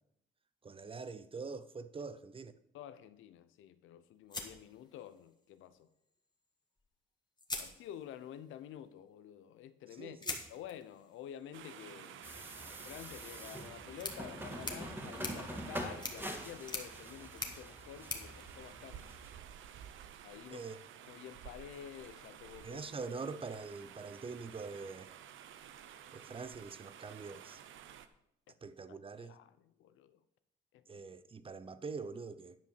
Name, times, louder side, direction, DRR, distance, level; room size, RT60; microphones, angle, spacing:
voice 1, 0.6-2.5 10.0-10.4 20.5-20.8 22.6-25.1 26.1-27.6 28.6-29.4 30.9-32.6, right 4 dB, 25° right, 0.6 m, -44 dB
voice 2, 2.7-5.9 7.6-12.3 12.6-19.1 20.2-20.7 21.1-22.8 28.9-30.2 30.7-31.0, left 10 dB, 85° left, 0.7 m, -50 dB
sound 1, 4.3-5.4 6.8-6.9 7.4-8.4 10.2-19.4, left 3 dB, 20° left, 1.7 m, -46 dB
sound 2, 11.5-28.1, right 10 dB, 75° right, 0.7 m, -52 dB
sound 3, 12.2-19.4, equal, 10° right, 2.0 m, -45 dB
10.0 x 5.4 x 6.7 m
cardioid pair, 90°, 20 cm